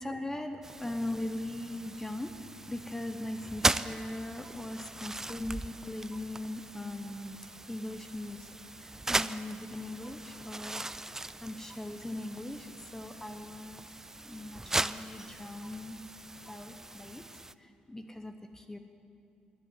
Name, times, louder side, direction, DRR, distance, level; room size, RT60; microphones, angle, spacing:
voice 1, 0.0-2.3 2.7-7.4 7.7-8.5 8.8-13.9 14.2-16.0 16.5-17.2 17.6-18.8, left 1 dB, 15° left, 6 dB, 0.9 m, -40 dB
sound 1, 0.6-17.5, right 2 dB, 15° right, 0.4 m, -38 dB
12.0 x 8.1 x 9.4 m, 2.6 s
supercardioid pair, 55°, 3 cm